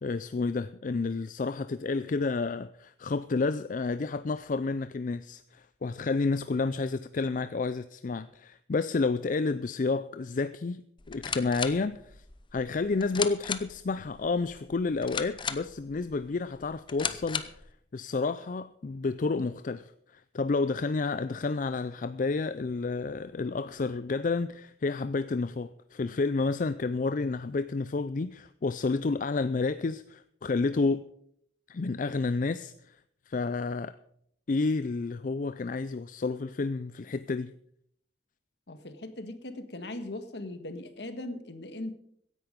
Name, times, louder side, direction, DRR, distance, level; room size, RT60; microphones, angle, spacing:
voice 1, 0.0-12.2 12.5-17.5 17.9-31.0 31.7-33.0 33.3-33.9 34.5-37.5, left 3 dB, 45° left, 0.4 m, -30 dB
sound 1, 11.0-17.7, left 6 dB, 25° left, 0.8 m, -37 dB
voice 2, 38.7-41.9, left 1 dB, 65° left, 1.6 m, -39 dB
16.0 x 10.5 x 5.1 m
head